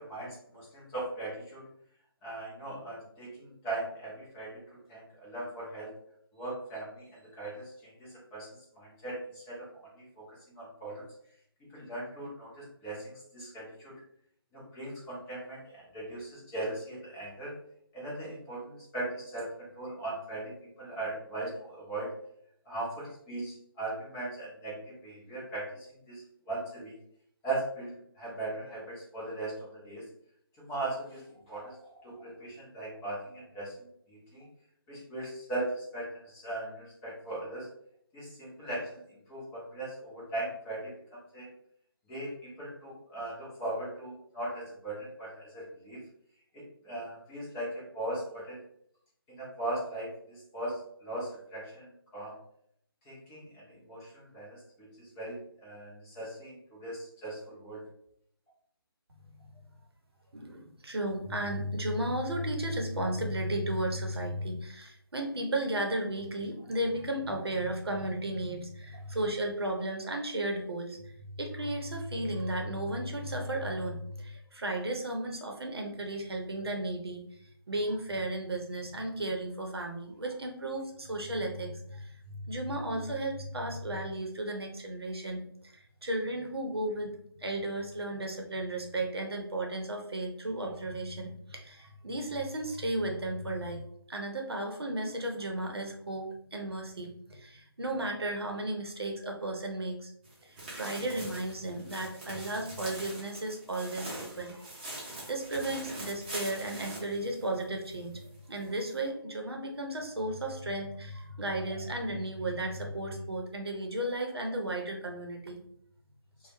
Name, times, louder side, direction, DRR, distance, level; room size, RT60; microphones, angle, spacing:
voice 1, 0.0-1.7 2.2-5.9 6.3-8.5 8.8-9.7 10.0-11.0 11.6-14.0 14.5-17.6 17.9-22.1 22.7-27.0 27.4-30.1 30.6-34.5 34.9-37.7 38.1-39.0 39.3-41.5 42.1-46.0 46.5-48.6 49.3-51.9 52.1-52.3 53.1-57.8, right 2 dB, 10° left, -6 dB, 0.4 m, -39 dB
voice 2, 60.3-77.2 77.7-93.8 94.1-100.1 100.4-108.2 108.5-115.6, right 1 dB, 80° right, 2 dB, 0.6 m, -34 dB
sound 1, 100.2-107.9 108.3-108.4 108.9-109.0, right 1 dB, 25° right, 0.7 m, -43 dB
2.0 x 2.0 x 2.9 m, 0.69 s
figure-of-eight pair, 155°, 13 cm